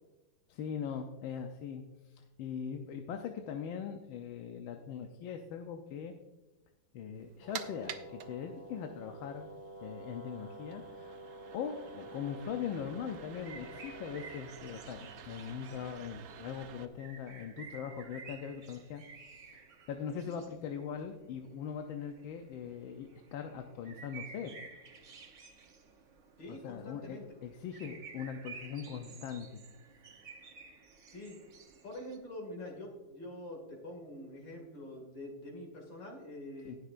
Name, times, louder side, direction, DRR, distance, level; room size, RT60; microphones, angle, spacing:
voice 1, 0.5-6.1 6.9-9.5 9.8-11.2 11.5-19.5 19.9-24.5 26.5-29.6 36.6-36.8, left 7 dB, 85° left, 5 dB, 1.5 m, -41 dB
sound 1, 7.2-16.9, right 8 dB, 75° right, 0.7 m, -50 dB
Brass instrument, 7.4-14.4, right 2 dB, 30° left, 3.1 m, -49 dB
sound 2, 13.1-32.2, right 5 dB, 50° right, 1.0 m, -53 dB
voice 2, 26.4-27.2 31.1-31.4 31.8-36.8, left 1 dB, 65° left, 1 dB, 2.9 m, -45 dB
19.5 x 6.6 x 2.5 m, 1.1 s
omnidirectional pair, 2.1 m